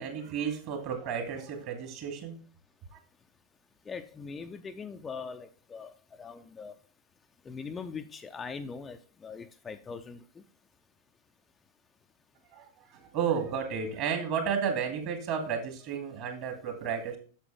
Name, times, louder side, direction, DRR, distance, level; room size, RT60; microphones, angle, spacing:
voice 1, 0.0-2.3 2.9-3.0 12.5-17.2, right 7 dB, 45° right, 5 dB, 2.3 m, -32 dB
voice 2, 3.9-5.9 6.2-6.7 7.5-10.2, left 5 dB, 20° left, 7 dB, 0.6 m, -41 dB
8.6 x 6.8 x 3.4 m, 0.39 s
figure-of-eight pair, 90°, 0 cm